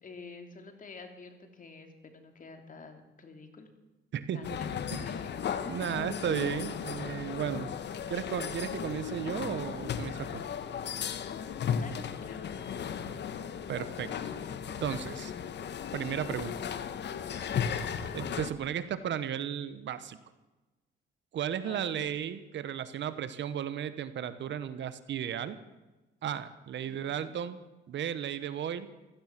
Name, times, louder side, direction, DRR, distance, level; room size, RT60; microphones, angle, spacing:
voice 1, 0.0-3.7 4.3-5.9 11.7-13.0 21.6-22.1 26.8-27.3, left 4 dB, 40° left, 5 dB, 2.9 m, -49 dB
voice 2, 4.1-4.4 4.9-5.1 5.7-7.7 8.1-10.4 13.7-14.1 14.8-15.3 15.9-16.5 18.1-20.2 21.3-25.6 26.2-28.9, right 9 dB, 65° right, 13 dB, 1.2 m, -34 dB
sound 1, 4.4-18.5, left 8 dB, 60° left, 1.2 m, -36 dB
16.0 x 14.5 x 6.1 m, 1.1 s
cardioid pair, 90°, 20 cm